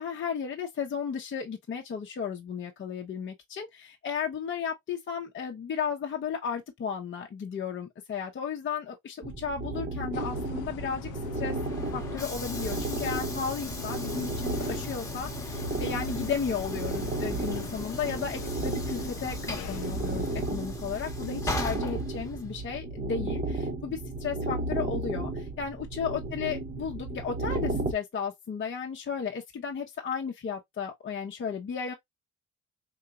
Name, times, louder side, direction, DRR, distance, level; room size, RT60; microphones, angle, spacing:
voice 1, 0.0-11.6 11.9-31.9, left 6 dB, 40° left, 0.7 m, -34 dB
sound 1, 9.2-27.9, right 2 dB, 30° right, 0.6 m, -34 dB
sound 2, 10.1-20.4, left 13 dB, 85° left, 0.5 m, -43 dB
Train / Sliding door, 11.3-22.7, left 2 dB, 10° left, 1.0 m, -40 dB
3.8 x 2.9 x 2.2 m
cardioid pair, 90°, 30 cm